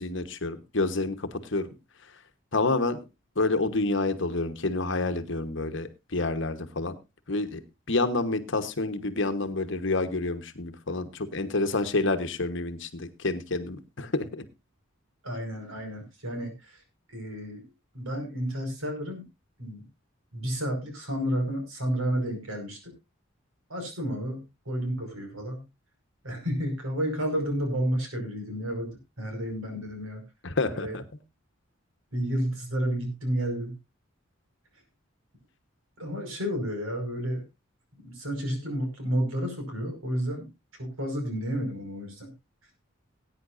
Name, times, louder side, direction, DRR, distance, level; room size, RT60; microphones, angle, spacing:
voice 1, 0.0-1.7 2.5-3.0 3.3-6.9 7.3-7.6 7.9-14.4 30.4-31.0, left 2 dB, 60° left, 9 dB, 1.2 m, -28 dB
voice 2, 15.2-16.8 17.1-17.6 17.9-19.2 19.6-19.8 20.3-22.8 23.7-25.6 26.2-28.9 29.2-30.2 30.7-30.9 32.1-33.8 36.0-37.4 38.1-40.4 40.8-42.3, equal, 85° right, 4 dB, 5.5 m, -31 dB
19.0 x 9.4 x 2.6 m, 0.24 s
head